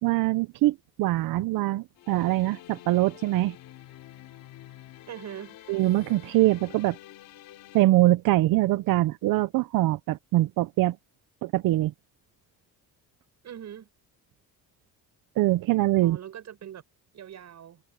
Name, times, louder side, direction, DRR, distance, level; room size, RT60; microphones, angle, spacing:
voice 1, 0.0-3.6 5.7-7.0 7.7-11.0 11.4-11.9 15.4-16.2, right 17 dB, 75° right, 0.6 m, -23 dB
sound 1, 2.0-7.8, left 14 dB, 90° left, 3.0 m, -48 dB
voice 2, 5.1-5.6 13.4-13.9 16.0-16.8 17.1-17.8, right 10 dB, 55° right, 7.0 m, -41 dB
cardioid pair, 140°, 34 cm